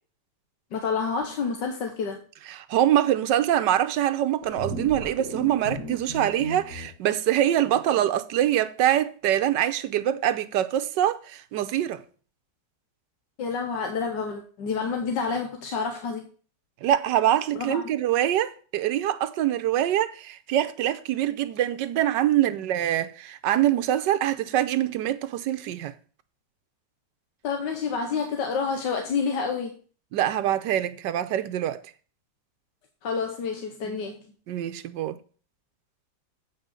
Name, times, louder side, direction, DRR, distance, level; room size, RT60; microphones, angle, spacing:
voice 1, 0.7-2.2 13.4-16.3 17.5-17.8 27.4-29.7 33.0-34.2, left 5 dB, 90° left, 1.7 m, -28 dB
voice 2, 2.5-12.0 16.8-25.9 30.1-31.8 33.8-34.0 34.5-35.2, right 12 dB, 85° right, 1.4 m, -24 dB
sound 1, 4.4-6.9, equal, 55° left, 2.7 m, -35 dB
8.0 x 5.5 x 6.7 m
omnidirectional pair, 1.9 m